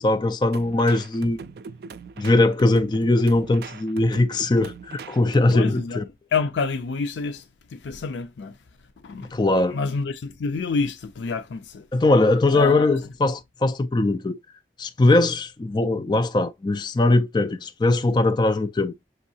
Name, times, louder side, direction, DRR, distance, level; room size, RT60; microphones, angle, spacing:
voice 1, 0.0-1.5 2.2-6.0 9.3-9.8 11.9-14.4 14.8-18.9, left 2 dB, 25° left, 0.3 m, -20 dB
sound 1, 0.5-6.0, right 5 dB, 60° right, 0.3 m, -41 dB
voice 2, 5.5-6.0 6.3-7.4 7.7-8.6 9.0-9.4 9.7-11.9 12.5-12.9, left 5 dB, 85° left, 0.4 m, -28 dB
6.4 x 2.7 x 2.7 m
head